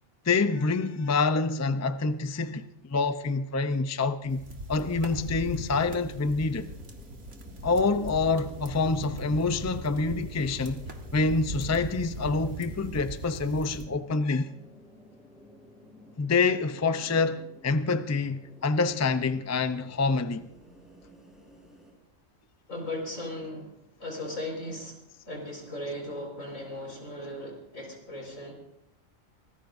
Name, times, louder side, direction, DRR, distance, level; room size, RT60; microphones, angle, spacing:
voice 1, 0.2-4.4 4.7-6.7 7.6-10.8 11.1-14.5 16.2-20.5, left 4 dB, 25° left, 0.4 m, -27 dB
sound 1, 4.3-13.9, right 1 dB, 60° right, 1.9 m, -40 dB
sound 2, 4.6-21.9, equal, ahead, 5.0 m, -54 dB
voice 2, 22.7-23.7 24.0-25.0 25.2-28.5, left 1 dB, 85° left, 5.5 m, -37 dB
25.5 x 19.0 x 2.6 m
omnidirectional pair, 1.4 m